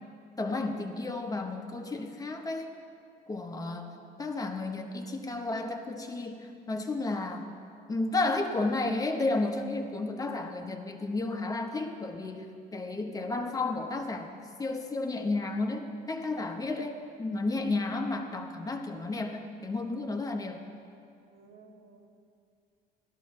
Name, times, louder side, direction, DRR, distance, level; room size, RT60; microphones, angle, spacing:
voice 1, 0.4-2.7 3.3-3.9 4.2-7.5 7.9-14.3 14.6-20.6, left 2 dB, 20° left, 4 dB, 1.1 m, -32 dB
voice 2, 3.4-4.2 21.3-22.1, right 4 dB, 75° right, -2 dB, 2.8 m, -55 dB
17.0 x 13.0 x 3.2 m, 2.4 s
cardioid pair, 110°, 17 cm